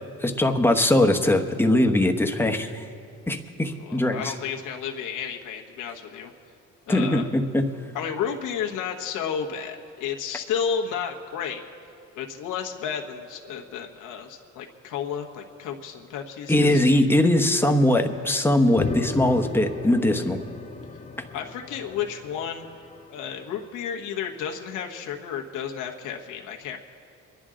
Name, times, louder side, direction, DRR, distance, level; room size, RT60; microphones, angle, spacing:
voice 1, 0.2-2.8 3.3-4.3 6.9-7.7 16.5-20.4, left 1 dB, 5° left, 4 dB, 1.0 m, -21 dB
voice 2, 3.8-6.3 6.9-7.3 7.9-11.6 12.1-16.8 21.3-22.7 23.1-26.8, left 7 dB, 85° left, 1 dB, 1.2 m, -32 dB
sound 1, 18.8-23.4, left 4 dB, 25° left, 0.8 m, -35 dB
24.5 x 10.5 x 3.8 m, 2.5 s
cardioid pair, 90°, 30 cm